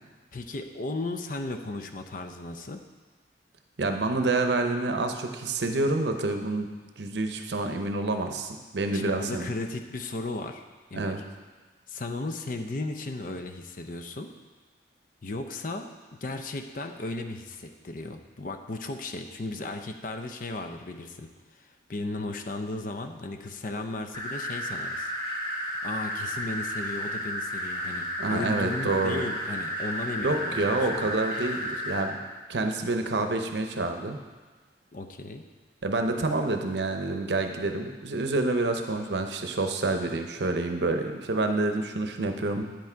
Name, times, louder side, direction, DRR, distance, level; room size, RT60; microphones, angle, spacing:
voice 1, 0.3-2.8 8.9-10.6 10.9-11.2 11.9-14.3 15.2-25.1 25.8-31.1 34.9-35.4, left 2 dB, 45° left, 6 dB, 0.5 m, -35 dB
voice 2, 3.8-6.7 7.0-9.5 10.9-11.2 28.2-29.3 30.2-32.2 32.5-34.2 35.8-42.6, right 2 dB, 70° right, 6 dB, 0.7 m, -28 dB
sound 1, 24.1-32.0, equal, 30° left, 1.5 m, -33 dB
8.8 x 6.0 x 4.5 m, 1.3 s
head